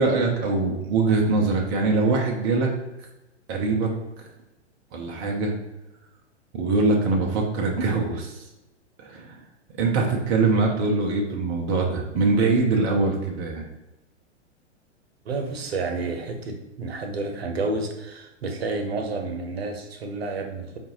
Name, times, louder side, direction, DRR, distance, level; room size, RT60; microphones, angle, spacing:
voice 1, 0.0-2.7 3.5-3.9 4.9-5.5 6.5-8.4 9.0-9.4 9.8-13.6, right 3 dB, 20° right, 0 dB, 0.4 m, -23 dB
voice 2, 15.2-20.8, right 3 dB, 60° right, 4 dB, 0.8 m, -30 dB
5.1 x 2.4 x 2.9 m, 0.95 s
figure-of-eight pair, 110°, 35 cm